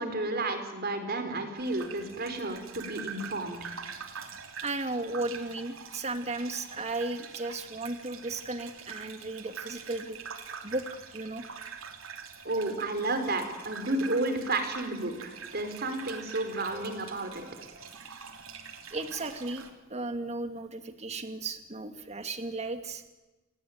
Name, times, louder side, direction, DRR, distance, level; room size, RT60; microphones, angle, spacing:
voice 1, 0.0-3.6 12.4-17.4, right 2 dB, 50° right, 7 dB, 4.6 m, -32 dB
sound 1, 1.6-19.7, right 6 dB, 80° right, 3.1 m, -45 dB
voice 2, 4.6-10.2 10.6-10.8 11.1-11.4 16.7-16.9 18.9-19.6 19.9-23.0, right 2 dB, 35° right, 8 dB, 2.3 m, -35 dB
28.5 x 19.5 x 9.5 m, 1.1 s
head